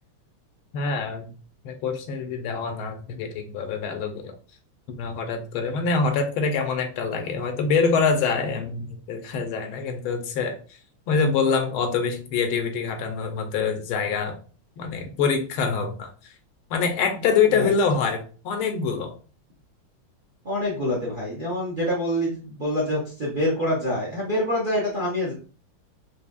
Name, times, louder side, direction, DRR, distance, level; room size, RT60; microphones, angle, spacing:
voice 1, 0.7-1.3 1.6-4.4 4.9-10.6 11.1-14.4 14.8-16.3 16.7-19.2, left 5 dB, 85° left, 6 dB, 1.5 m, -25 dB
voice 2, 20.4-25.3, equal, 50° right, -4 dB, 0.6 m, -26 dB
4.8 x 2.6 x 2.3 m, 0.38 s
omnidirectional pair, 2.3 m